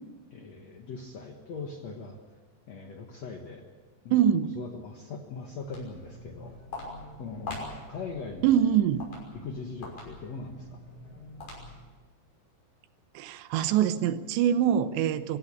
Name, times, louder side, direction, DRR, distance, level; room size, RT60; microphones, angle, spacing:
voice 1, 0.3-2.2 2.7-3.7 4.0-6.6 7.2-8.7 9.3-10.8, left 4 dB, 65° left, 3 dB, 1.7 m, -40 dB
voice 2, 4.1-4.5 8.4-9.0 13.1-15.4, right 9 dB, 85° right, 12 dB, 3.2 m, -24 dB
Walk footsteps, 5.5-12.0, left 2 dB, 45° left, 7.3 m, -44 dB
25.0 x 15.5 x 8.7 m, 1.4 s
omnidirectional pair, 4.9 m